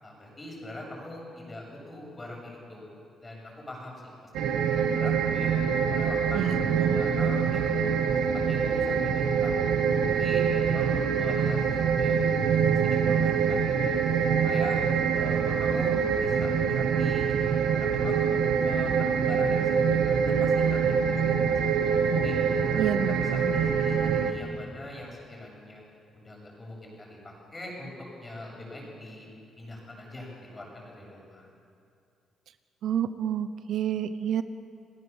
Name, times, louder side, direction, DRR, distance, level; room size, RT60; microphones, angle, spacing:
voice 1, 0.0-2.8 3.2-7.7 8.3-9.7 10.2-14.0 14.4-14.8 15.1-18.2 18.6-22.3 22.7-25.8 26.1-27.9 28.2-29.3 29.6-31.5, left 1 dB, 20° left, -1 dB, 7.7 m, -43 dB
sound 1, 4.3-24.3, right 6 dB, 85° right, 1.7 m, -25 dB
voice 2, 6.3-7.1 22.8-23.6 32.8-34.4, right 9 dB, 70° right, 12 dB, 0.8 m, -29 dB
30.0 x 18.0 x 7.1 m, 2.4 s
cardioid pair, 110°, 0 cm